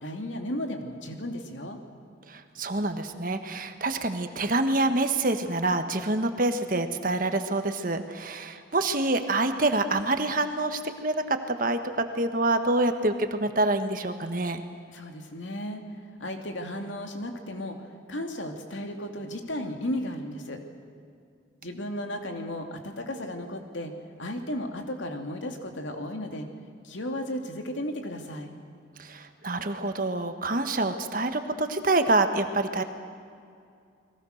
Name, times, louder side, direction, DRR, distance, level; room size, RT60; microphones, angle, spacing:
voice 1, 0.0-1.8 14.9-15.8 16.2-20.6 21.6-23.9 24.2-26.5 26.8-28.5, left 1 dB, 80° left, 4 dB, 2.6 m, -34 dB
voice 2, 2.3-14.6 29.0-32.8, right 2 dB, 45° right, 7 dB, 1.5 m, -26 dB
30.0 x 21.5 x 6.6 m, 2.3 s
head